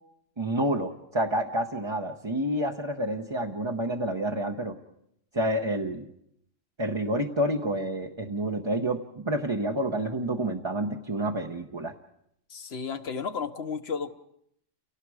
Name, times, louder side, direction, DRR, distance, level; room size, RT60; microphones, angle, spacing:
voice 1, 0.4-4.8 5.3-6.0 6.8-11.9, right 1 dB, 25° right, 1 dB, 0.9 m, -29 dB
voice 2, 12.5-14.1, left 5 dB, 55° left, 10 dB, 1.3 m, -33 dB
30.0 x 18.5 x 4.8 m, 0.73 s
omnidirectional pair, 1.3 m